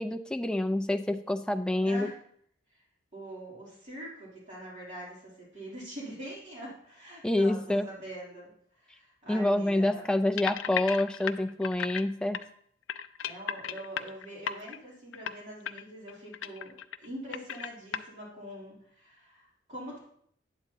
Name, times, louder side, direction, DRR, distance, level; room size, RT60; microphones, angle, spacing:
voice 1, 0.0-2.1 7.2-7.9 9.3-12.4, left 1 dB, 5° left, 6 dB, 0.4 m, -27 dB
voice 2, 1.8-2.2 2.7-2.8 3.1-8.5 8.8-10.1 13.2-20.0, right 1 dB, 40° right, -6 dB, 2.9 m, -44 dB
sound 1, 10.4-12.0 12.3-12.4 12.9-14.8 15.1-15.4 15.6-15.8 16.1-17.1 17.3-18.0, left 9 dB, 85° left, 0.4 m, -35 dB
9.2 x 7.8 x 2.8 m, 0.65 s
head